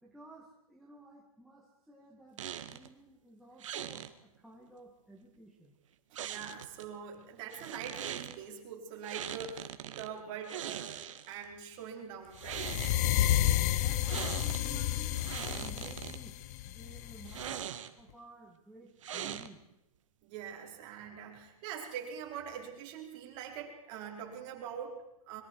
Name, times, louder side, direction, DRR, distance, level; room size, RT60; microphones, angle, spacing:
voice 1, 0.0-2.4 2.7-5.8 13.8-16.4 16.7-19.6, right 1 dB, ahead, -5 dB, 1.7 m, -54 dB
sound 1, 2.4-2.9 3.6-4.1 6.1-6.8 7.5-8.4 9.0-10.1 10.4-11.4 12.2-13.0 14.0-14.7 15.0-16.2 17.2-18.1 19.0-19.7, right 10 dB, 55° right, 1.7 m, -41 dB
voice 2, 6.1-12.8 20.2-25.4, right 7 dB, 30° right, 0 dB, 4.9 m, -44 dB
sound 2, 12.5-17.5, left 13 dB, 30° left, 0.6 m, -31 dB
25.5 x 22.5 x 4.7 m, 0.88 s
hypercardioid pair, 165°, 19 cm